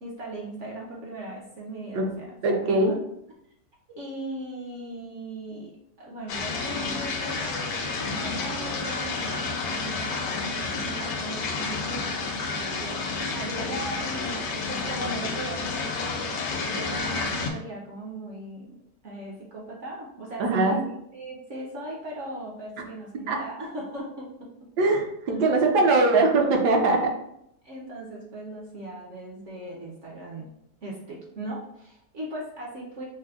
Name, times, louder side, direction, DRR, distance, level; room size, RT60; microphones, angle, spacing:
voice 1, 0.0-3.0 3.9-5.7 6.0-13.0 13.3-18.8 19.0-20.8 21.1-24.7 25.4-25.9 26.9-27.0 27.6-30.5 30.8-33.1, right 1 dB, 60° right, -3 dB, 0.8 m, -38 dB
voice 2, 2.4-2.9 20.4-20.8 22.8-22.9 23.3-23.4 24.8-27.0, right 3 dB, 75° right, 2 dB, 1.2 m, -21 dB
sound 1, 6.3-17.5, left 4 dB, 70° left, 1.0 m, -30 dB
5.6 x 2.1 x 2.3 m, 0.76 s
omnidirectional pair, 1.8 m